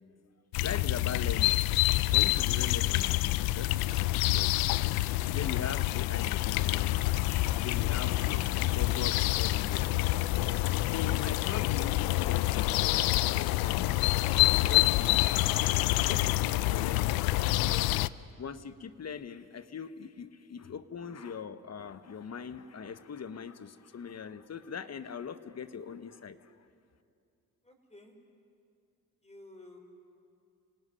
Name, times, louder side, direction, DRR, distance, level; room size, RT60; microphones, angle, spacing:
sound 1, 0.5-18.1, left 17 dB, 85° left, 0.6 m, -27 dB
voice 1, 0.6-1.6 2.1-4.7 5.2-7.0 7.5-10.0 10.9-13.9 14.7-15.8 16.1-17.3 17.6-17.9 18.4-26.5, left 6 dB, 45° left, 12 dB, 1.3 m, -41 dB
voice 2, 27.6-28.1 29.2-29.8, left 2 dB, 20° left, 4 dB, 5.1 m, -52 dB
27.5 x 17.5 x 10.0 m, 2.5 s
supercardioid pair, 60°, 35 cm